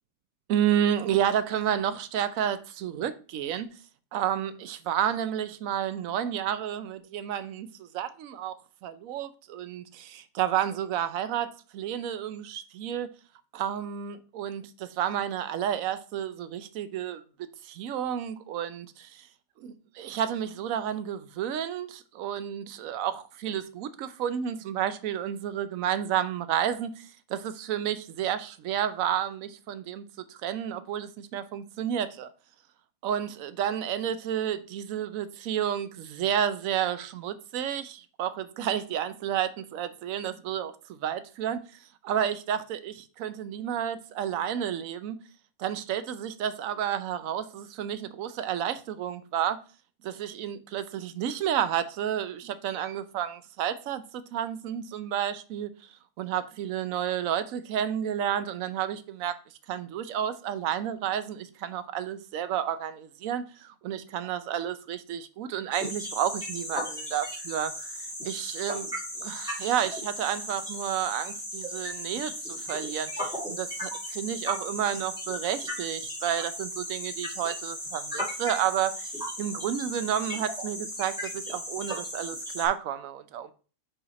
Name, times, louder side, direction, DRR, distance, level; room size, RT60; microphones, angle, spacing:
voice 1, 0.5-3.7 4.1-8.5 8.8-13.1 13.5-17.2 17.6-19.3 19.6-32.3 33.0-41.6 42.0-45.2 45.6-49.6 50.0-55.7 56.2-59.3 59.7-68.9 69.2-83.5, right 10 dB, 70° right, 1.0 m, -31 dB
sound 1, 65.7-82.7, equal, 5° right, 1.5 m, -36 dB
5.0 x 5.0 x 4.1 m
omnidirectional pair, 1.5 m